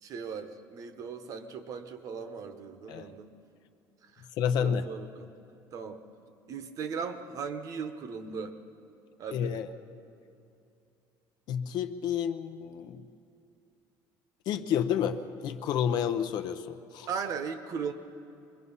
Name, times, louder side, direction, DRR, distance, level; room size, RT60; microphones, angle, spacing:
voice 1, 0.0-3.3 4.0-5.3 5.7-6.0 6.5-8.6 9.2-9.6 17.1-17.9, right 6 dB, 40° right, 9 dB, 1.1 m, -38 dB
voice 2, 4.4-4.8 9.3-9.7 11.5-13.1 14.5-17.1, left 8 dB, 50° left, 8 dB, 0.8 m, -30 dB
25.0 x 21.5 x 5.6 m, 2.7 s
cardioid pair, 170°, 9 cm